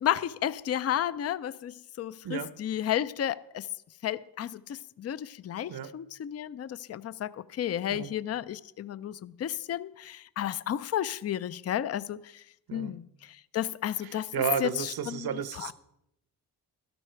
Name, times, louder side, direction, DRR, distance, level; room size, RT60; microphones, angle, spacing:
voice 1, 0.0-3.7 4.0-12.4 12.7-15.3 15.6-15.7, left 11 dB, 40° left, 0.5 m, -32 dB
voice 2, 14.0-15.7, right 7 dB, 65° right, 0.9 m, -33 dB
12.5 x 12.0 x 4.5 m
cardioid pair, 85°, 39 cm